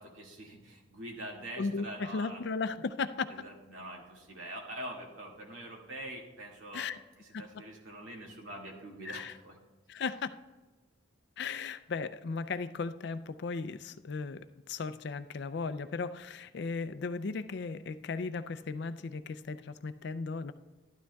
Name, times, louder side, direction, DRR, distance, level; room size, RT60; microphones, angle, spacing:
voice 1, 0.0-2.4 3.3-6.9 7.2-9.6, right 1 dB, 80° right, -1 dB, 2.1 m, -44 dB
voice 2, 1.6-3.3 6.7-7.0 7.3-7.4 9.1-9.3 9.9-10.3 11.4-20.5, left 4 dB, 55° left, 12 dB, 0.4 m, -36 dB
12.5 x 12.0 x 2.3 m, 1.3 s
head